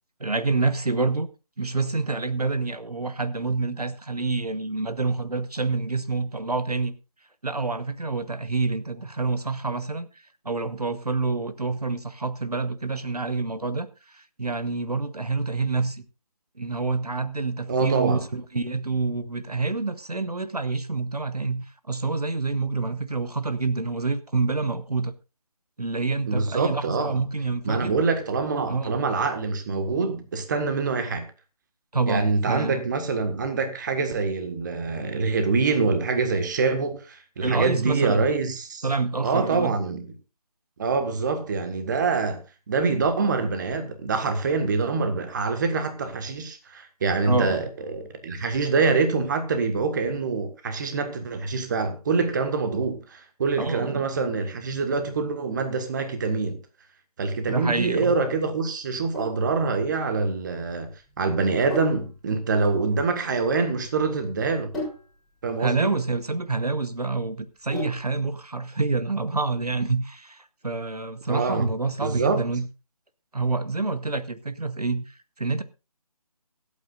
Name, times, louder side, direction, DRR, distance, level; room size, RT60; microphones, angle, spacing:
voice 1, 0.2-1.3 1.6-6.9 7.4-16.0 16.6-25.1 25.8-28.0 28.7-29.0 31.9-32.9 37.4-38.3 38.8-39.8 47.3-47.7 53.6-54.1 57.5-58.2 65.6-72.7 73.3-75.6, right 3 dB, 80° right, 1.0 m, -27 dB
voice 2, 17.7-18.2 26.3-27.1 27.6-31.2 32.1-38.9 39.2-40.0 40.8-42.4 42.7-56.6 57.2-60.9 61.2-64.7 65.4-65.9 71.3-71.7 72.0-72.4, right 4 dB, 30° right, 1.6 m, -25 dB
Sink (filling or washing), 58.8-68.3, left 1 dB, ahead, 4.5 m, -39 dB
24.0 x 8.5 x 2.5 m
figure-of-eight pair, 150°, 20 cm